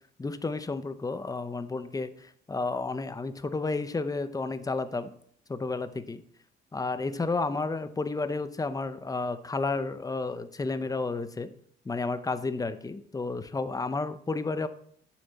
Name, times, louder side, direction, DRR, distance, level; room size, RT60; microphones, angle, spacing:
voice 1, 0.2-5.1 5.5-6.2 6.7-11.5 11.8-14.7, left 3 dB, 20° left, 11 dB, 0.7 m, -31 dB
9.1 x 7.0 x 4.2 m, 0.62 s
cardioid pair, 90°, 20 cm